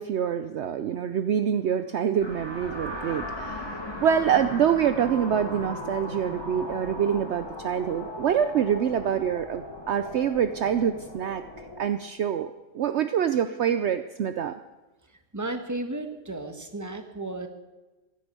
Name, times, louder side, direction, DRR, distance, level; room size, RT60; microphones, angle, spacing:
voice 1, 0.0-3.7 4.0-14.6, right 8 dB, 70° right, 10 dB, 0.6 m, -26 dB
sound 1, 2.2-11.8, left 1 dB, 15° left, 2.4 m, -38 dB
voice 2, 15.3-17.5, right 2 dB, 10° right, 7 dB, 1.2 m, -33 dB
16.0 x 11.5 x 6.8 m, 1.1 s
omnidirectional pair, 1.8 m